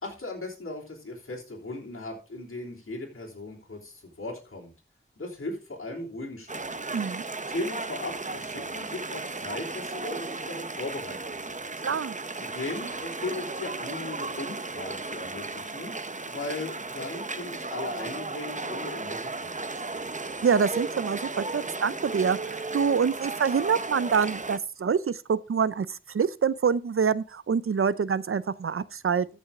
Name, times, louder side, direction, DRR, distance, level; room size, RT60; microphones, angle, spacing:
voice 1, 0.0-4.7 5.2-6.8 7.5-11.6 12.3-20.0, left 2 dB, 90° left, 3.3 m, -38 dB
sound 1, 6.5-24.6, right 3 dB, 35° right, 0.8 m, -35 dB
voice 2, 6.9-7.2 11.8-12.1 20.4-29.3, right 6 dB, 85° right, 0.5 m, -26 dB
14.0 x 6.3 x 3.6 m
wide cardioid pair, 45°, 21 cm